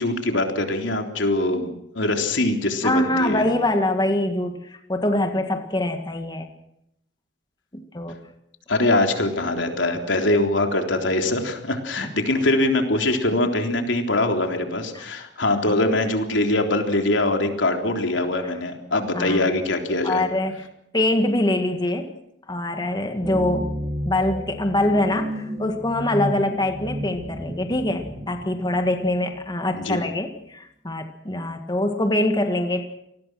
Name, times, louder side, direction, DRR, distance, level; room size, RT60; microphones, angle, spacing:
voice 1, 0.0-3.5 8.7-20.2 29.7-30.0, left 2 dB, 90° left, 4 dB, 3.6 m, -23 dB
voice 2, 2.8-6.5 7.7-8.2 13.3-13.4 14.9-15.1 18.4-18.5 19.1-19.5 20.0-20.7 20.9-22.2 22.5-23.8 24.0-32.8, left 1 dB, 25° left, 6 dB, 1.9 m, -24 dB
sound 1, 23.2-29.8, right 1 dB, 15° right, 3.2 m, -32 dB
28.5 x 19.5 x 6.3 m, 0.77 s
head